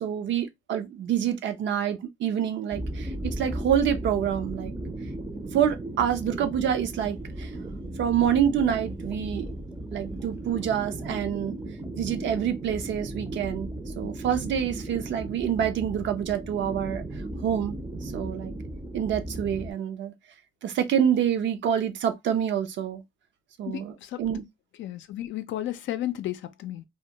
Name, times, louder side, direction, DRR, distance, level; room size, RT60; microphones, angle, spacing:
voice 1, 0.0-4.7 5.5-7.5 8.0-9.5 9.9-11.6 12.0-13.7 14.0-17.0 17.4-17.8 18.0-18.5 18.9-20.1 20.6-23.0 23.6-24.4, right 9 dB, 65° right, 0.6 m, -27 dB
sound 1, 2.7-19.7, right 1 dB, 10° right, 0.5 m, -36 dB
voice 2, 23.7-24.2 24.8-26.8, left 13 dB, 70° left, 0.4 m, -33 dB
2.2 x 2.2 x 2.8 m
cardioid pair, 90°, 20 cm